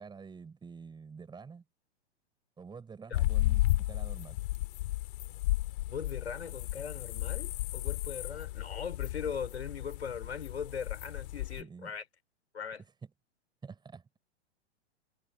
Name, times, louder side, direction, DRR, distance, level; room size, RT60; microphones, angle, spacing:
voice 1, 0.0-1.6 2.6-4.4 11.6-11.9 13.6-14.0, right 5 dB, 10° right, 7.2 m, -48 dB
sound 1, 3.1-11.6, left 17 dB, 45° left, 3.1 m, -33 dB
voice 2, 5.9-12.0 12.5-12.8, left 7 dB, 70° left, 5.0 m, -39 dB
figure-of-eight pair, 105°, 34 cm